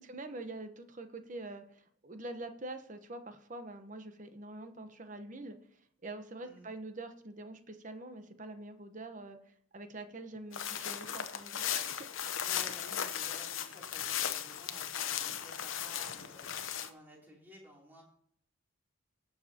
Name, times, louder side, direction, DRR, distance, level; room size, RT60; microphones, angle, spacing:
voice 1, 0.0-5.6 6.0-12.1, right 2 dB, 40° right, 8 dB, 1.0 m, -45 dB
sound 1, 10.5-16.9, left 9 dB, 75° left, 0.8 m, -37 dB
voice 2, 12.4-16.5 16.8-18.0, equal, 10° right, -3 dB, 3.1 m, -54 dB
19.0 x 6.6 x 2.9 m, 0.64 s
head